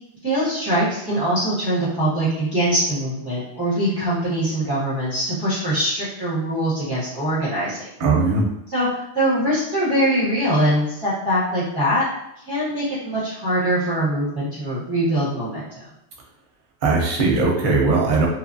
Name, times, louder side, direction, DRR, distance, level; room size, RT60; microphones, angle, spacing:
voice 1, 0.2-7.9 8.7-12.0 12.4-15.7, right 1 dB, 20° right, -12 dB, 0.9 m, -22 dB
voice 2, 8.0-8.5 16.8-18.3, right 3 dB, 50° right, -2 dB, 0.8 m, -19 dB
2.8 x 2.3 x 2.6 m, 0.83 s
omnidirectional pair, 1.2 m